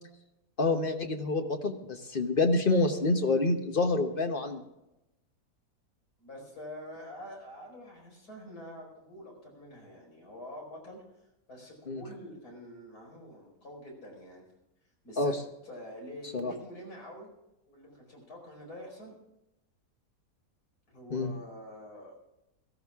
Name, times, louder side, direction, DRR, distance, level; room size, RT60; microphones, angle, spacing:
voice 1, 0.6-4.6 11.9-12.0 15.2-15.3 16.3-16.5 21.1-21.3, left 3 dB, 40° left, 5 dB, 1.2 m, -27 dB
voice 2, 6.2-11.0 11.5-14.5 15.0-15.3 15.6-17.3 17.7-19.1 20.9-22.1, equal, 90° left, -1 dB, 5.4 m, -46 dB
17.5 x 14.5 x 3.6 m, 0.90 s
omnidirectional pair, 1.6 m